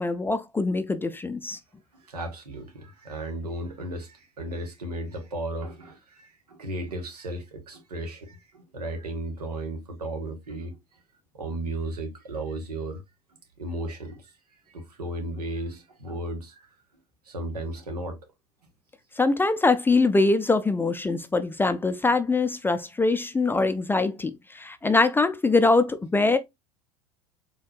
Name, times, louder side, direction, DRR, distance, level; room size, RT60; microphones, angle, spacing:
voice 1, 0.0-1.6 19.2-26.4, left 3 dB, 10° left, 0.4 m, -23 dB
voice 2, 1.9-11.0 11.3-13.0 13.6-16.8 17.2-18.2, right 1 dB, 85° right, 1.2 m, -35 dB
4.4 x 3.5 x 2.4 m
figure-of-eight pair, 75°, 20 cm